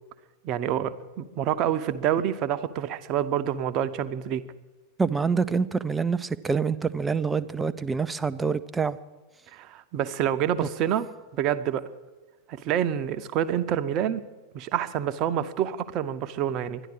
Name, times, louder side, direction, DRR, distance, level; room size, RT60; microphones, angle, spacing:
voice 1, 0.4-4.4 9.5-11.1 11.3-11.9 12.5-14.2 14.5-16.8, right 10 dB, 40° right, 10 dB, 0.9 m, -27 dB
voice 2, 5.0-9.0 10.6-10.7, right 5 dB, 15° right, 12 dB, 0.6 m, -26 dB
12.0 x 11.0 x 9.7 m, 1.2 s
figure-of-eight pair, 90°, 0 cm